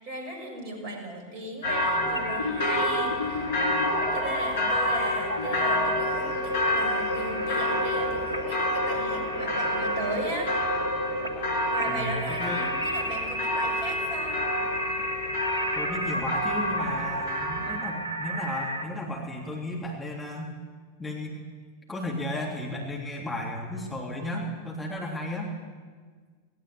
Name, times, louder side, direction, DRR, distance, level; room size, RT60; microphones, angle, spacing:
voice 1, 0.0-3.5 4.1-10.5 11.7-14.4, right 1 dB, 40° right, 3 dB, 6.7 m, -36 dB
sound 1, 1.6-17.8, left 1 dB, 60° left, 6.4 m, -29 dB
sound 2, 1.8-18.8, equal, 80° right, 2.0 m, -32 dB
voice 2, 11.8-12.6 15.7-20.5 21.0-21.4 21.9-25.5, left 1 dB, 10° left, -2 dB, 3.4 m, -34 dB
19.5 x 18.5 x 8.5 m, 1.5 s
figure-of-eight pair, 90°, 0 cm